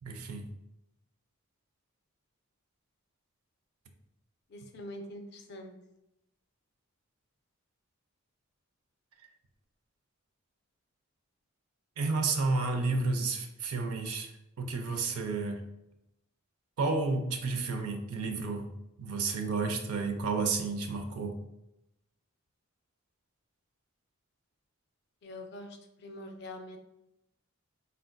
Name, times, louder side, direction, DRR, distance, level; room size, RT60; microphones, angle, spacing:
voice 1, 0.0-0.5 12.0-14.3 14.6-15.6 16.8-18.7 19.0-21.4, right 3 dB, 90° right, 6 dB, 0.5 m, -31 dB
voice 2, 4.5-5.8 25.2-26.8, left 1 dB, 50° left, 4 dB, 0.4 m, -44 dB
3.5 x 2.5 x 2.2 m, 0.88 s
head